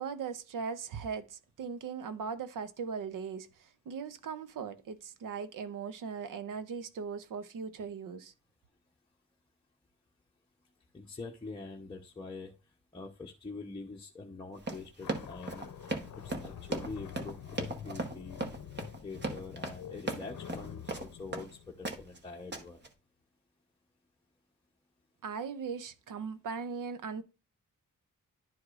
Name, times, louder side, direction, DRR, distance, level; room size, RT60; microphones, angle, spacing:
voice 1, 0.0-8.3 25.2-27.2, right 6 dB, 90° right, 0.7 m, -39 dB
voice 2, 10.9-12.5 12.9-15.9 16.2-18.4 19.0-22.8, left 3 dB, 15° left, 0.7 m, -45 dB
Run, 14.6-21.5 21.8-22.2 22.5-22.9, right 2 dB, 35° right, 1.0 m, -37 dB
sound 1, 15.0-22.4, left 9 dB, 70° left, 0.6 m, -47 dB
11.0 x 4.8 x 2.4 m
wide cardioid pair, 160°, 31 cm